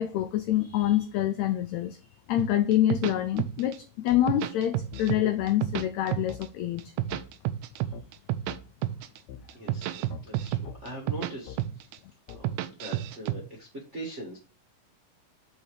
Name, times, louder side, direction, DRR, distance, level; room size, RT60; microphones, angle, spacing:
voice 1, 0.0-2.0 2.3-3.8 4.0-6.9, left 12 dB, 85° left, 1.6 m, -26 dB
sound 1, 2.4-3.8 4.1-5.2 5.5-6.4 6.8-8.6 8.8-9.2 9.5-11.3 11.6-12.0 12.3-13.4, right 14 dB, 80° right, 2.0 m, -30 dB
sound 2, 4.1-4.2 4.9-5.1 5.7-5.9 6.3-6.4 7.1-7.2 7.9-8.1 8.5-8.6 9.3-9.4 10.1-10.2 10.6-10.8 11.5-11.6 12.3-12.4, left 10 dB, 70° left, 1.8 m, -42 dB
voice 2, 9.5-10.0 10.2-11.9 12.3-14.4, right 1 dB, 35° right, 1.2 m, -41 dB
5.3 x 4.7 x 4.8 m
omnidirectional pair, 3.8 m